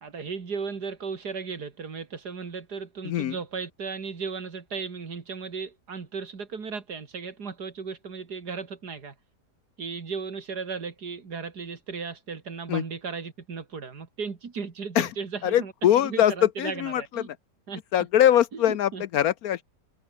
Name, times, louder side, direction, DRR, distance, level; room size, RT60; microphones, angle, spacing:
voice 1, 0.0-9.2 9.8-17.3 17.7-17.8 18.5-19.0, right 5 dB, 70° right, 2.9 m, -36 dB
voice 2, 15.4-16.3 16.6-17.0 17.9-19.6, left 11 dB, 65° left, 1.0 m, -22 dB
omnidirectional pair, 1.8 m